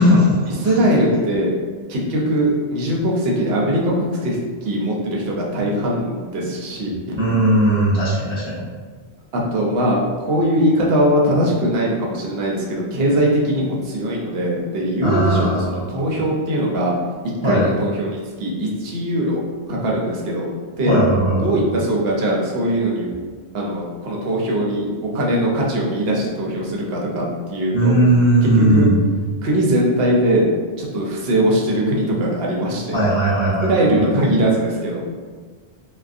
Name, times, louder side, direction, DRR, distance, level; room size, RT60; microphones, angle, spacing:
voice 1, 0.0-0.8 7.1-8.6 15.0-15.8 17.4-17.6 20.9-21.6 27.7-28.9 32.9-34.1, right 1 dB, 45° right, -9 dB, 0.3 m, -17 dB
voice 2, 0.6-1.5 1.9-7.0 9.3-16.9 17.4-19.4 19.7-21.0 21.4-23.1 23.5-28.0 28.4-28.9 29.4-30.5 30.8-33.0 33.6-35.0, right 1 dB, 65° right, -2 dB, 0.7 m, -21 dB
2.4 x 2.2 x 2.5 m, 1.5 s
omnidirectional pair, 1.2 m